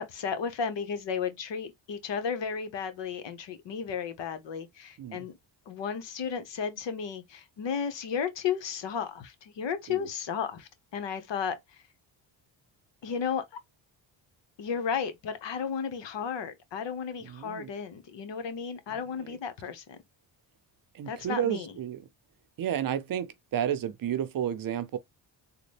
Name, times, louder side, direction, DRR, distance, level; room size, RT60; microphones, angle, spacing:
voice 1, 0.0-5.3 5.7-11.8 13.0-13.4 14.6-20.0 21.1-21.7, left 7 dB, 70° left, 1.1 m, -34 dB
voice 2, 17.2-17.7 19.1-19.4 20.9-22.1 22.6-25.0, right 9 dB, 50° right, 0.6 m, -32 dB
3.8 x 2.2 x 3.3 m
cardioid pair, 95°, 45 cm